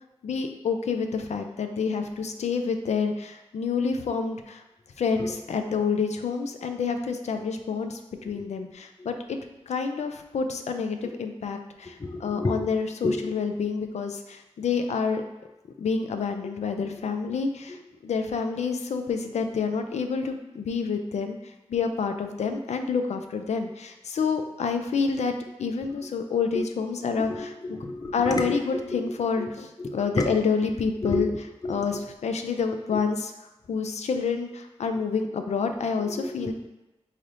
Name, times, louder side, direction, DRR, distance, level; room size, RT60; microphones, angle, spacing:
voice 1, 0.2-4.6 5.0-9.4 9.7-15.2 15.8-17.8 18.0-21.4 21.7-27.5 28.1-31.3 31.7-33.3 33.7-36.5, left 5 dB, 85° left, 6 dB, 0.4 m, -28 dB
voice 2, 12.0-12.7 13.0-13.3 17.3-17.4 17.7-17.8 25.9-26.0 26.5-26.7 27.2-29.5 29.8-30.4 31.0-32.0 32.9-33.0 36.0-36.5, left 2 dB, 35° left, 4 dB, 0.5 m, -31 dB
4.0 x 3.2 x 2.6 m, 1.0 s
cardioid pair, 45°, 11 cm